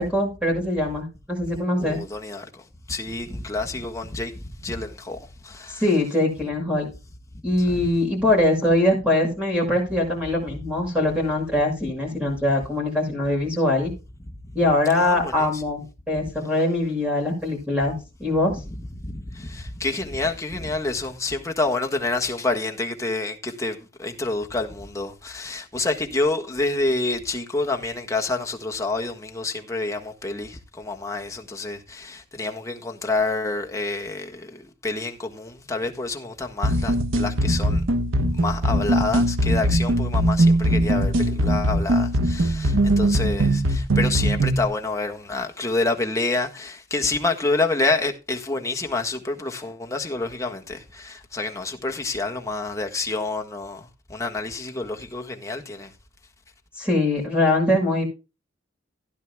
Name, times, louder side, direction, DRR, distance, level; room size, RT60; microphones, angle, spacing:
voice 1, 0.0-2.0 5.8-6.9 7.4-13.9 14.5-17.9 18.2-18.6 56.8-58.1, left 1 dB, 5° right, 6.3 m, -22 dB
voice 2, 1.8-5.8 7.6-7.8 14.9-15.6 19.0-37.8 38.3-55.9, left 3 dB, 15° left, 1.5 m, -28 dB
sound 1, 36.6-44.6, right 1 dB, 90° right, 1.1 m, -21 dB
16.5 x 10.5 x 2.3 m
head